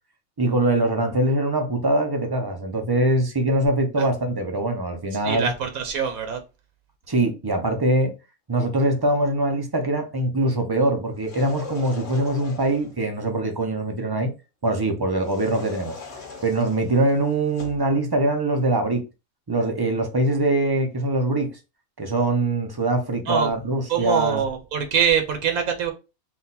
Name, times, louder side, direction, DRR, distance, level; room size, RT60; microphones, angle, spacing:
voice 1, 0.4-5.5 7.1-8.1 8.5-14.3 14.6-16.0 16.4-19.0 19.5-21.6 22.0-24.4, right 1 dB, 30° right, 0.4 m, -23 dB
voice 2, 5.1-6.4 23.3-23.5 23.9-25.9, right 7 dB, 85° right, 1.2 m, -24 dB
sound 1, 11.1-13.0 15.2-17.9, left 4 dB, 55° left, 1.3 m, -40 dB
3.9 x 2.4 x 4.0 m
omnidirectional pair, 1.5 m